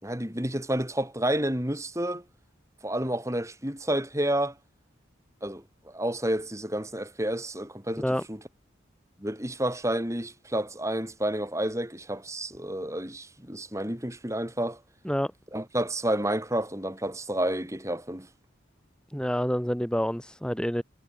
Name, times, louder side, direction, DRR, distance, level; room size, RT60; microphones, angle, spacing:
voice 1, 0.0-2.2 2.8-4.6 5.4-8.4 9.2-14.8 15.5-18.3, right 1 dB, 15° right, 6.0 m, -30 dB
voice 2, 19.1-20.8, equal, 5° left, 1.6 m, -28 dB
head